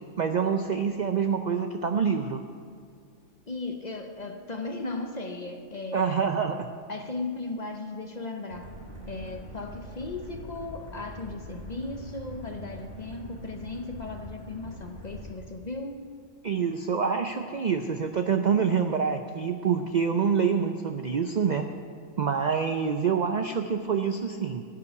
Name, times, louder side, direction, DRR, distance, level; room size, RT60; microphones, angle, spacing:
voice 1, 0.2-2.4 5.9-6.7 16.4-21.7 22.2-24.6, right 6 dB, 70° right, 6 dB, 0.4 m, -26 dB
voice 2, 3.5-6.3 6.9-8.8 9.1-16.0, left 3 dB, 35° left, 5 dB, 0.7 m, -36 dB
sound 1, 8.5-15.3, equal, 40° right, 4.7 m, -43 dB
15.5 x 5.7 x 9.3 m, 2.2 s
omnidirectional pair, 1.5 m